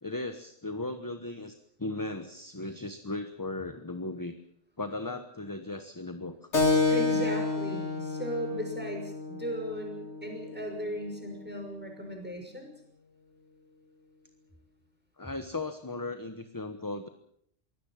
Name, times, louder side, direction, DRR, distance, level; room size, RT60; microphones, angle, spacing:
voice 1, 0.0-4.3 4.8-6.4 15.2-17.1, left 2 dB, 15° left, 8 dB, 1.2 m, -37 dB
Keyboard (musical), 6.5-11.6, left 3 dB, 70° left, 3.6 m, -30 dB
voice 2, 6.9-12.7, equal, 10° right, 3 dB, 6.0 m, -37 dB
23.0 x 17.0 x 7.5 m, 0.69 s
omnidirectional pair, 1.2 m